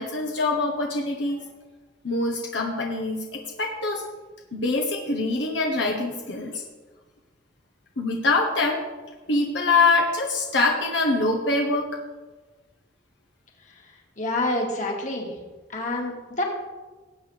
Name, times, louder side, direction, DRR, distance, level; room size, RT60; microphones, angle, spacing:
voice 1, 0.0-1.4 2.0-4.0 4.5-6.6 8.0-8.8 9.3-11.9, left 3 dB, 75° left, 0 dB, 1.2 m, -24 dB
voice 2, 14.2-15.3 15.7-16.4, left 2 dB, 40° left, 0 dB, 2.1 m, -27 dB
18.5 x 8.3 x 3.5 m, 1.3 s
head